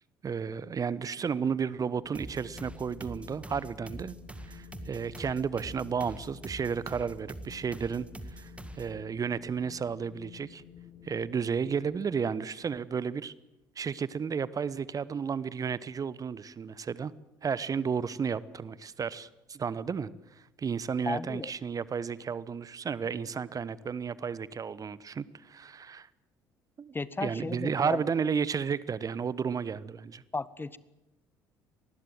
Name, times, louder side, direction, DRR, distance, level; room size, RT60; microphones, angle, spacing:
voice 1, 0.2-4.1 4.5-8.1 8.4-10.6 11.0-13.3 13.8-17.1 17.4-20.1 20.6-26.1 26.8-26.9 27.2-30.2, right 6 dB, 35° right, 19 dB, 1.0 m, -32 dB
Wind, 2.0-12.0, left 9 dB, 45° left, 3.7 m, -52 dB
sound 1, 2.1-9.0, right 1 dB, 10° right, 2.1 m, -45 dB
voice 2, 21.1-21.5 26.9-28.0 30.3-30.8, left 3 dB, 20° left, 19 dB, 1.0 m, -34 dB
25.5 x 20.0 x 7.8 m, 0.97 s
figure-of-eight pair, 55°, 11 cm